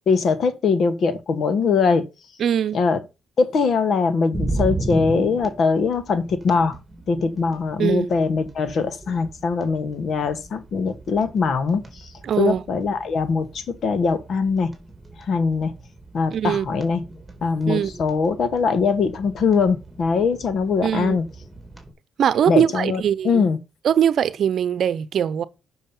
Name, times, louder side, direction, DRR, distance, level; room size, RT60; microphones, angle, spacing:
voice 1, 0.1-2.0 2.7-3.0 3.4-6.7 7.1-12.1 12.4-14.7 15.3-15.7 16.1-17.0 17.4-21.2 22.5-23.6, left 5 dB, 55° left, 1.5 m, -22 dB
voice 2, 2.4-2.8 7.8-8.1 12.2-12.6 16.3-16.7 17.7-17.9 20.8-21.2 22.2-23.4 23.8-25.4, right 9 dB, 65° right, 0.8 m, -21 dB
sound 1, 4.3-21.9, right 2 dB, 10° right, 3.3 m, -36 dB
7.2 x 6.2 x 5.5 m
cardioid pair, 90°, 0 cm